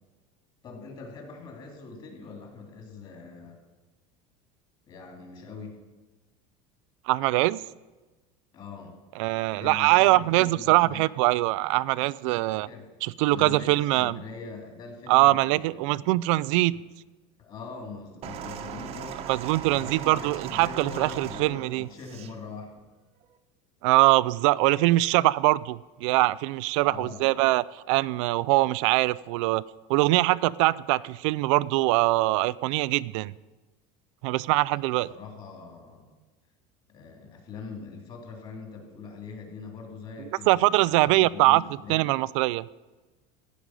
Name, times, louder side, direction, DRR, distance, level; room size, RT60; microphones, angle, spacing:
voice 1, 0.6-3.6 4.9-5.8 8.5-9.0 9.5-11.0 12.5-12.8 13.3-16.2 16.7-16.8 17.4-22.8 26.9-27.2 34.7-36.0 36.9-42.2, left 4 dB, 30° left, 1 dB, 3.0 m, -42 dB
voice 2, 7.1-7.6 9.2-12.7 13.0-14.2 15.1-16.8 19.3-21.9 23.8-29.6 29.9-33.3 34.2-35.1 40.5-41.6 41.9-42.7, right 19 dB, 70° right, 20 dB, 0.4 m, -23 dB
sound 1, 18.2-22.4 23.2-23.4, right 8 dB, 35° right, 1.0 m, -39 dB
15.5 x 5.2 x 9.7 m, 1.2 s
cardioid pair, 160°, 17 cm